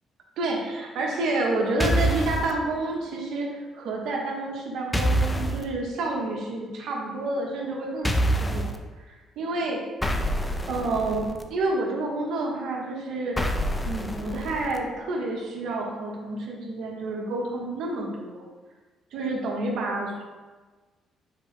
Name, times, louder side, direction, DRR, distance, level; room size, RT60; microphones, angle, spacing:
voice 1, 0.4-8.1 8.4-8.7 9.4-9.8 10.7-13.4 13.8-18.4 19.1-20.2, right 2 dB, 75° right, -1 dB, 0.9 m, -29 dB
sound 1, 1.8-2.5 4.9-5.6 8.0-8.8 10.0-11.4 13.4-14.8, right 1 dB, 10° left, 0.4 m, -26 dB
5.3 x 2.1 x 4.6 m, 1.3 s
cardioid pair, 90°, 0 cm